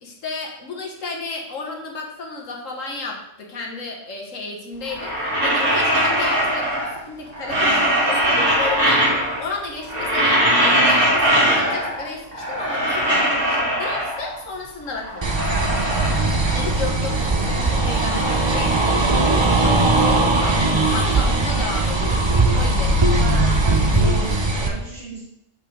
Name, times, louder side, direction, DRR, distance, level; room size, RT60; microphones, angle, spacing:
voice 1, 0.0-15.4 16.5-22.2 22.5-23.4, left 3 dB, 90° left, -1 dB, 1.7 m, -33 dB
sound 1, 4.9-7.0 7.3-9.5 9.8-12.0 12.3-14.4 14.9-16.9 17.1-19.3, equal, 70° right, 3.3 m, -21 dB
sound 2, 15.2-24.7, right 2 dB, 25° right, 0.6 m, -19 dB
voice 2, 23.2-25.2, right 2 dB, 55° right, -1 dB, 1.3 m, -33 dB
6.4 x 5.3 x 6.2 m, 0.85 s
omnidirectional pair, 1.3 m